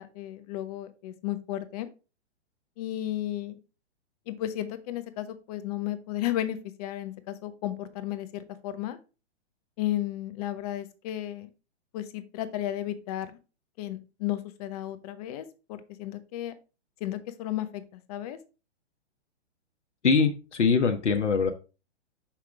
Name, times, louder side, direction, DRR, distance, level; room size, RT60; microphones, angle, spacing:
voice 1, 0.0-1.9 2.8-3.6 4.3-9.0 9.8-11.5 11.9-13.3 13.8-16.5 17.0-18.4, left 13 dB, 35° left, 12 dB, 0.8 m, -34 dB
voice 2, 20.0-21.5, left 5 dB, 90° left, 6 dB, 1.1 m, -23 dB
6.3 x 5.8 x 3.4 m, 0.32 s
hypercardioid pair, 135°, 35 cm